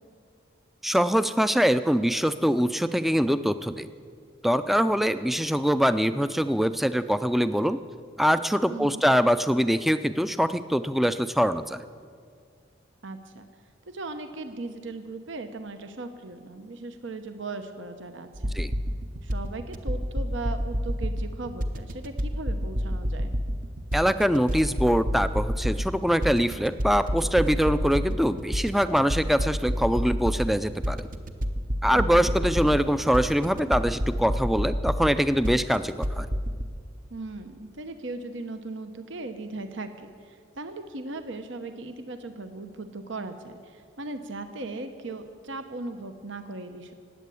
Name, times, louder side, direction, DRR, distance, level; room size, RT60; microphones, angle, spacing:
voice 1, 0.8-3.9 4.4-7.8 8.2-11.8 18.5-18.7 23.9-31.1 31.8-36.3, equal, ahead, 12 dB, 0.4 m, -23 dB
voice 2, 8.7-9.0 13.0-13.4 13.9-18.5 19.2-23.3 31.9-32.3 37.1-46.9, right 2 dB, 75° right, 8 dB, 1.0 m, -38 dB
sound 1, 18.3-36.6, equal, 45° right, 0.8 m, -29 dB
19.0 x 8.5 x 8.3 m, 2.1 s
head